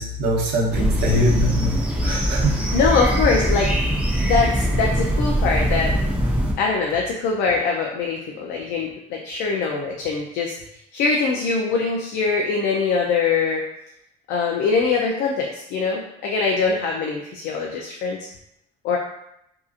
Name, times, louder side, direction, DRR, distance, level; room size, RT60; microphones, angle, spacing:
voice 1, 0.0-2.5, equal, 75° right, -3 dB, 0.8 m, -23 dB
sound 1, 0.7-6.5, equal, 10° right, 0.4 m, -22 dB
voice 2, 2.7-3.7 4.2-5.9 6.6-10.5 10.9-13.6 14.3-18.3 18.8-19.0, left 4 dB, 80° left, 0 dB, 0.4 m, -23 dB
2.7 x 2.4 x 2.4 m, 0.80 s
cardioid pair, 110°, 17 cm